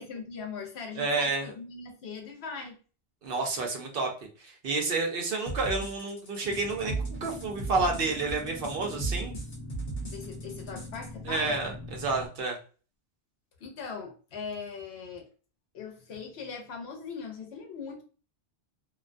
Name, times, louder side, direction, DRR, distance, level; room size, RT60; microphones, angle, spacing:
voice 1, 0.0-2.7 10.1-11.6 13.6-15.3 15.7-18.0, left 5 dB, 90° left, 4 dB, 0.9 m, -40 dB
voice 2, 0.9-1.5 3.2-4.1 4.4-7.0 7.2-9.3 11.3-12.6, right 3 dB, 65° right, 2 dB, 0.8 m, -30 dB
sound 1, 5.5-11.1, right 3 dB, 40° left, 0.8 m, -36 dB
sound 2, 6.4-12.3, left 1 dB, 20° right, 0.5 m, -43 dB
2.5 x 2.2 x 2.4 m, 0.37 s
omnidirectional pair, 1.0 m